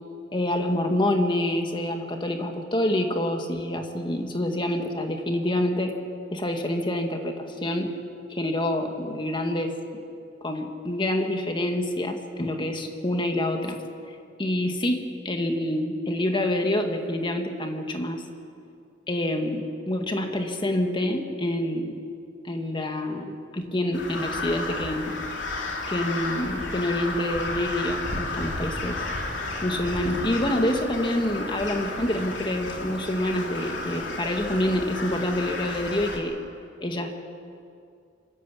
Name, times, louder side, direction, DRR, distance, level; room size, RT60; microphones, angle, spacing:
voice 1, 0.3-5.9 6.3-7.9 8.3-9.8 10.4-13.8 14.4-18.2 19.1-22.0 22.4-25.1 25.9-29.1 29.6-36.4 36.8-37.1, left 1 dB, 25° left, 4 dB, 1.9 m, -27 dB
Crow, 23.9-36.2, left 2 dB, 90° left, 3.1 m, -32 dB
25.0 x 14.0 x 8.5 m, 2.4 s
head